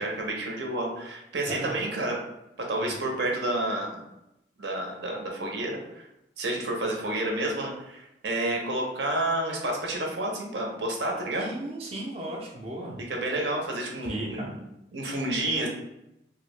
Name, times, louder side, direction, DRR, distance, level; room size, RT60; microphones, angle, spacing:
voice 1, 0.0-2.2 2.7-4.0 4.6-6.0 6.4-11.5 13.1-14.6 14.9-15.7, right 1 dB, 75° right, 0 dB, 0.7 m, -30 dB
voice 2, 1.5-1.8 2.8-2.9 11.4-13.0 14.0-14.5, right 1 dB, 35° right, -3 dB, 0.4 m, -36 dB
2.7 x 2.4 x 3.1 m, 0.85 s
head